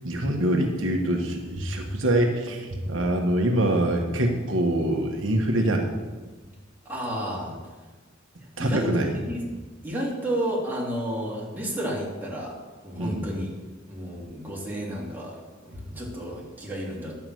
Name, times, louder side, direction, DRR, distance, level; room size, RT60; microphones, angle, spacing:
voice 1, 0.0-5.9 8.6-9.1 13.0-13.2, right 1 dB, 75° right, 2 dB, 1.3 m, -24 dB
voice 2, 6.8-7.6 8.6-9.4 9.8-12.5 12.8-13.5 13.9-17.2, right 1 dB, 10° right, -5 dB, 2.9 m, -31 dB
11.0 x 5.8 x 7.7 m, 1.3 s
head